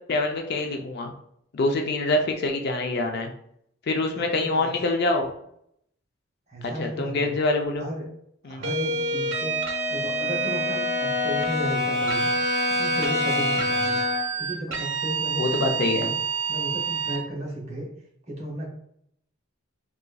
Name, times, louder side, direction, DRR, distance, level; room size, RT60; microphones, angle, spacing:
voice 1, 0.1-1.1 1.5-3.3 3.9-5.3 6.8-7.8 8.4-8.6 13.9-14.0 15.4-16.1, left 2 dB, 50° left, 3 dB, 0.4 m, -25 dB
voice 2, 4.1-4.7 6.5-7.3 7.8-8.1 8.4-12.3 12.7-14.0 14.4-16.1 16.5-17.9 18.3-18.7, right 1 dB, 35° right, -2 dB, 0.9 m, -34 dB
sound 1, 8.6-11.5 12.1-17.2, right 4 dB, 75° right, 0.6 m, -28 dB
Brass instrument, 8.8-14.4, left 2 dB, 50° right, 1.3 m, -27 dB
3.9 x 2.4 x 2.3 m, 0.71 s
head